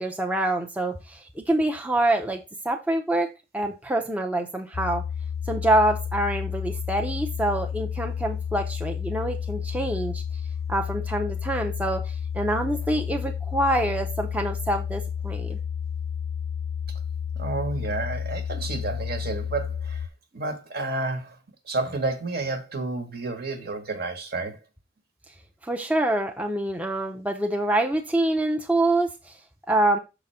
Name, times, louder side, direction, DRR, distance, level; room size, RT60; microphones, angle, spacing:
voice 1, 0.0-3.3 3.5-5.0 5.5-10.2 10.7-15.6 25.6-29.4 29.7-30.0, right 1 dB, 10° right, 0.6 m, -26 dB
sound 1, 4.7-20.1, left 7 dB, 50° left, 0.6 m, -31 dB
voice 2, 17.4-20.1 20.3-21.4 21.7-24.6, right 3 dB, 55° right, 1.3 m, -30 dB
6.6 x 4.0 x 5.5 m
head